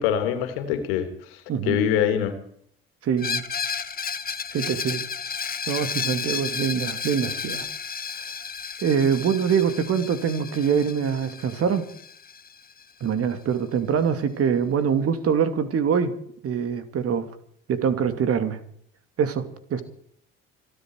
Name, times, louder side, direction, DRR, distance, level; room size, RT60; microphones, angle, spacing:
voice 1, 0.0-2.3, left 9 dB, 80° left, 8 dB, 2.7 m, -24 dB
voice 2, 3.0-3.4 4.5-5.0 5.7-7.7 8.8-11.8 13.0-16.1 16.4-17.3 17.7-18.6 19.2-19.8, right 7 dB, 50° right, 10 dB, 2.5 m, -24 dB
Screech, 3.2-12.8, left 6 dB, 30° left, 1.4 m, -32 dB
27.0 x 10.0 x 4.7 m, 0.64 s
hypercardioid pair, 60°, 29 cm